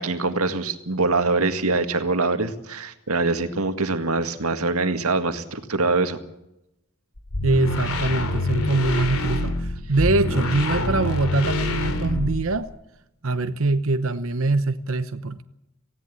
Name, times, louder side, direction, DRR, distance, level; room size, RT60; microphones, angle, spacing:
voice 1, 0.0-6.2, right 3 dB, 90° right, 2.0 m, -24 dB
sound 1, 7.2-12.7, left 1 dB, 90° left, 3.0 m, -26 dB
voice 2, 7.4-12.7 13.2-15.4, right 2 dB, 65° right, 1.0 m, -23 dB
19.0 x 16.5 x 8.8 m
head